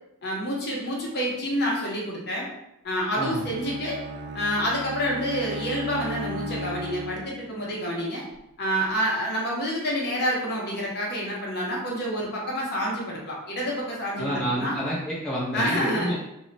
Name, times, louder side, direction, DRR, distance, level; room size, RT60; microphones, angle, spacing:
voice 1, 0.2-2.5 2.8-4.0 4.3-8.2 8.6-14.8 15.5-16.1, equal, 50° left, -4 dB, 0.7 m, -28 dB
voice 2, 3.2-3.6 14.2-16.2, equal, 5° left, -8 dB, 0.7 m, -29 dB
Bowed string instrument, 3.2-7.6, equal, 50° right, 0.3 m, -36 dB
2.1 x 2.1 x 3.8 m, 0.84 s
head